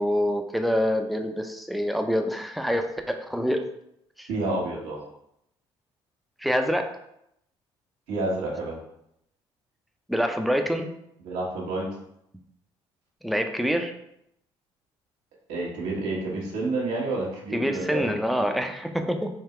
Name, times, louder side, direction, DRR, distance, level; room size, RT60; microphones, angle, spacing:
voice 1, 0.0-3.6 4.2-4.3 6.4-6.9 10.1-10.9 13.2-13.9 17.5-19.3, equal, ahead, 5 dB, 0.6 m, -26 dB
voice 2, 4.3-5.0 8.1-8.8 11.2-11.8 15.5-18.1, right 2 dB, 85° right, -3 dB, 1.4 m, -29 dB
3.7 x 2.8 x 4.3 m, 0.78 s
supercardioid pair, 70°, 11 cm